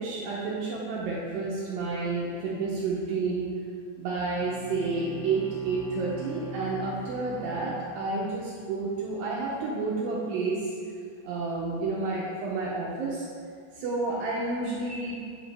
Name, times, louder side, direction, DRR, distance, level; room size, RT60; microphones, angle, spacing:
voice 1, 0.0-3.5 4.0-10.7 11.2-13.3 13.8-15.2, right 3 dB, 80° right, -5 dB, 2.1 m, -30 dB
Bowed string instrument, 4.2-8.6, right 1 dB, 85° left, 3.0 m, -43 dB
8.5 x 4.9 x 3.3 m, 2.1 s
omnidirectional pair, 5.0 m